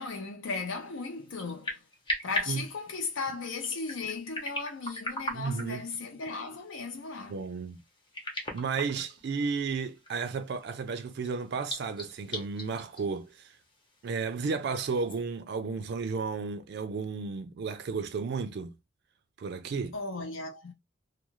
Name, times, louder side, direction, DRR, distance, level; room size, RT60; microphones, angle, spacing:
voice 1, 0.0-1.8 2.2-7.4 19.9-20.7, left 4 dB, 75° left, 0.6 m, -36 dB
sound 1, 0.7-15.2, left 1 dB, 25° left, 0.7 m, -41 dB
voice 2, 5.3-5.8 7.3-7.8 8.5-13.6 14.0-18.7 19.4-20.0, right 5 dB, 55° right, 0.3 m, -33 dB
2.4 x 2.3 x 2.9 m
head